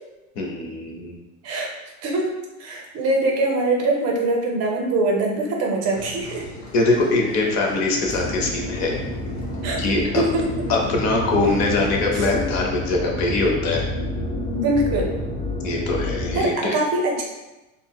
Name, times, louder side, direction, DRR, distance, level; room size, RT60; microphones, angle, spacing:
voice 1, 0.4-1.2 6.7-9.0 9.8-10.2 10.7-13.8 15.6-16.8, left 2 dB, 40° left, 0 dB, 0.6 m, -22 dB
voice 2, 2.6-6.4 9.6-9.8 10.1-10.6 12.1-12.3 14.5-15.1 16.3-17.2, right 2 dB, 40° right, 0 dB, 0.6 m, -23 dB
Applause, 5.9-12.1, left 1 dB, 75° left, 0.9 m, -38 dB
sound 1, 8.0-16.5, left 1 dB, 20° left, 1.4 m, -29 dB
3.8 x 2.1 x 2.2 m, 1.0 s
hypercardioid pair, 95°, 41 cm